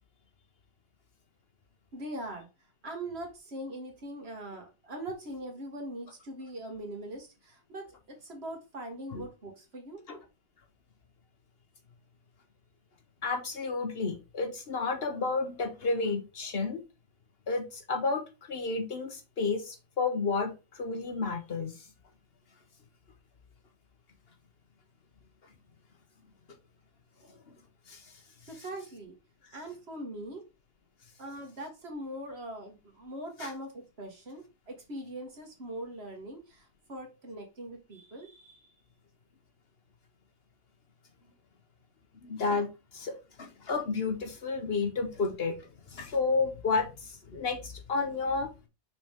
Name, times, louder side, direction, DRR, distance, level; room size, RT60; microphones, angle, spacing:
voice 1, 1.9-2.5 2.8-10.0 28.5-29.2 29.5-30.4 31.2-38.7, right 1 dB, 90° right, 2.1 m, -41 dB
voice 2, 13.2-16.8 17.5-21.9 27.3-27.4 27.9-28.1 33.4-33.5 42.2-48.5, left 4 dB, 75° left, 1.5 m, -31 dB
6.0 x 4.5 x 3.6 m
omnidirectional pair, 1.0 m